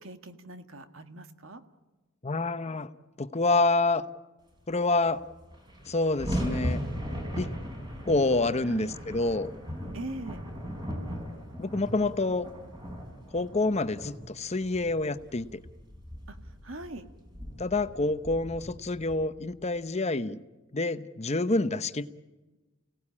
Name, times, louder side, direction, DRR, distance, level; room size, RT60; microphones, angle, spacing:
voice 1, 0.0-1.6 8.6-8.9 9.9-10.4 16.3-16.4 16.6-17.0, right 2 dB, 65° right, 8 dB, 1.8 m, -41 dB
voice 2, 2.2-2.9 3.2-4.0 4.7-5.2 5.9-6.8 7.4-7.5 8.1-9.5 11.6-12.5 13.3-15.6 17.6-20.4 20.7-22.1, left 2 dB, 30° left, 12 dB, 0.9 m, -27 dB
sound 1, 5.0-5.1 5.3-19.7, equal, 20° right, 4.7 m, -38 dB
29.5 x 17.5 x 8.6 m, 1.2 s
head